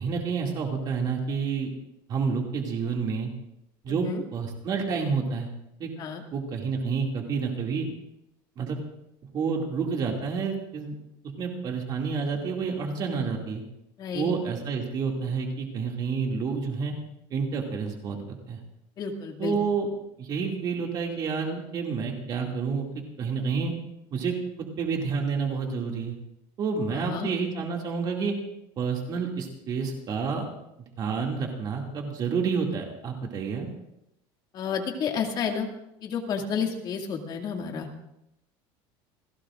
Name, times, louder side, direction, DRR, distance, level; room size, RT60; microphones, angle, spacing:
voice 1, 0.0-1.7 2.1-3.3 3.8-5.5 5.8-5.9 6.3-7.9 8.6-8.8 9.3-11.0 11.4-13.6 14.1-16.9 17.3-18.6 19.4-19.9 20.2-23.7 24.1-26.1 26.6-28.3 28.8-30.5 31.0-33.7, right 5 dB, 40° right, 0 dB, 2.5 m, -29 dB
voice 2, 3.9-4.2 6.0-6.2 14.0-14.3 19.0-19.5 26.9-27.3 34.5-35.7 36.0-37.9, left 6 dB, 40° left, 2 dB, 2.3 m, -31 dB
29.0 x 17.0 x 2.6 m, 0.84 s
cardioid pair, 155°, 11 cm